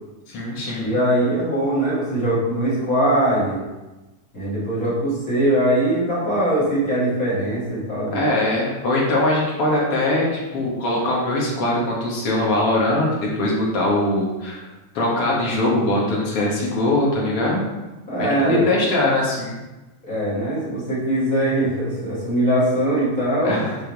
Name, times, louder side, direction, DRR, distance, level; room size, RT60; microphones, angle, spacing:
voice 1, 0.3-0.9 8.1-14.7 14.9-17.6 18.2-19.6 23.4-23.8, left 1 dB, 55° left, -4 dB, 2.2 m, -21 dB
voice 2, 0.8-3.6 4.3-8.3 18.1-18.7 20.0-23.6, right 1 dB, 30° left, -10 dB, 2.5 m, -21 dB
8.3 x 4.4 x 3.5 m, 1.1 s
omnidirectional pair, 3.5 m